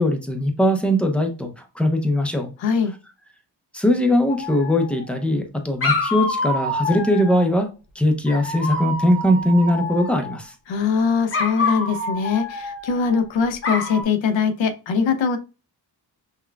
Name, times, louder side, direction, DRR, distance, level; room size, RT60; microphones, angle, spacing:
voice 1, 0.0-2.5 3.7-7.7 8.0-10.5, left 1 dB, 5° left, 5 dB, 0.5 m, -20 dB
voice 2, 2.6-2.9 10.7-15.4, left 5 dB, 80° left, 8 dB, 0.7 m, -22 dB
Dog, 4.3-5.1 5.8-7.5 8.3-10.4 11.3-13.2 13.6-14.0, left 3 dB, 30° left, 0.8 m, -27 dB
5.7 x 2.2 x 2.3 m, 0.31 s
wide cardioid pair, 135°, 44 cm